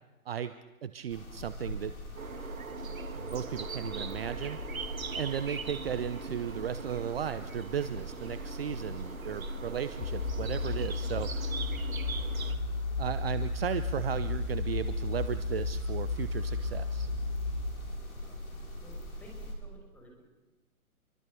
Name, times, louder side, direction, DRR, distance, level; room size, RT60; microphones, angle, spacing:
voice 1, 0.8-1.9 3.1-4.6 5.1-11.6 13.0-17.1, right 9 dB, 40° right, 13 dB, 0.9 m, -35 dB
sound 1, 1.1-19.6, left 1 dB, 65° left, 6.3 m, -42 dB
sound 2, 2.2-12.5, right 5 dB, 65° right, 1.9 m, -42 dB
sound 3, 10.0-17.7, left 3 dB, 30° left, 1.3 m, -33 dB
voice 2, 18.8-20.2, equal, 5° left, 0 dB, 5.8 m, -55 dB
26.0 x 24.0 x 6.8 m, 1.2 s
figure-of-eight pair, 130°, 44 cm